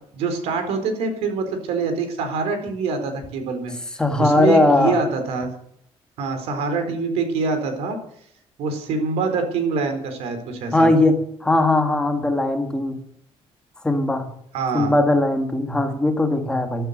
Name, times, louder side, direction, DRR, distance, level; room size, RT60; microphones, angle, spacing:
voice 1, 0.1-3.7 4.2-5.5 6.2-8.0 8.6-10.9 14.5-14.9, right 4 dB, 80° right, 7 dB, 4.2 m, -25 dB
voice 2, 4.0-5.0 10.7-13.0 13.8-14.3 14.7-16.9, left 2 dB, 10° left, 5 dB, 1.8 m, -19 dB
13.5 x 12.5 x 6.8 m, 0.68 s
cardioid pair, 175°, 11 cm